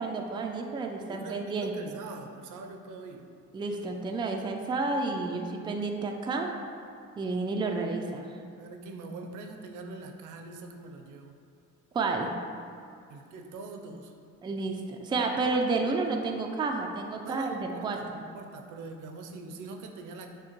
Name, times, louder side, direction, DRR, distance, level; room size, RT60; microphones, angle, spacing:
voice 1, 0.0-2.0 3.5-6.5 7.2-8.4 11.9-12.3 14.4-18.0, right 3 dB, 15° right, 2 dB, 0.3 m, -30 dB
voice 2, 1.1-3.3 8.5-11.4 13.1-14.1 17.2-20.3, right 3 dB, 80° right, 4 dB, 0.5 m, -43 dB
6.3 x 2.2 x 2.9 m, 2.4 s
cardioid pair, 90°, 30 cm